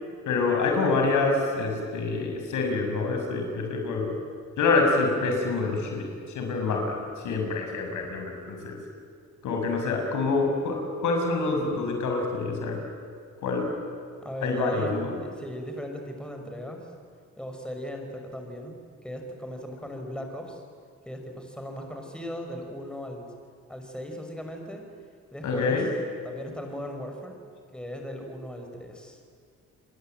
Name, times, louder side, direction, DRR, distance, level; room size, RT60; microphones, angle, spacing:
voice 1, 0.3-4.2 4.6-6.1 6.3-8.8 9.4-12.8 13.4-13.8 14.4-15.2 25.4-25.9, left 3 dB, 75° left, 2 dB, 6.6 m, -26 dB
voice 2, 14.1-16.9 17.4-20.6 21.1-23.3 23.7-24.8 25.3-25.8 26.2-27.4 27.7-29.2, equal, 5° left, 3 dB, 5.7 m, -37 dB
29.5 x 22.5 x 9.1 m, 2.1 s
cardioid pair, 90°, 30 cm